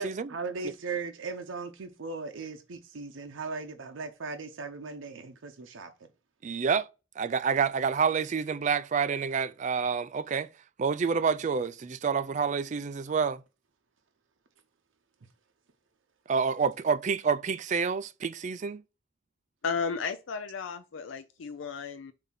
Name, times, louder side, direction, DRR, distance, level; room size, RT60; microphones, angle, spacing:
voice 1, 0.0-5.9, right 4 dB, 90° right, 0.6 m, -38 dB
voice 2, 6.4-6.9 7.2-10.5 10.8-13.4 16.3-18.8, right 5 dB, 40° right, 0.3 m, -28 dB
voice 3, 19.6-22.1, left 5 dB, 85° left, 0.4 m, -34 dB
7.2 x 2.7 x 5.6 m
head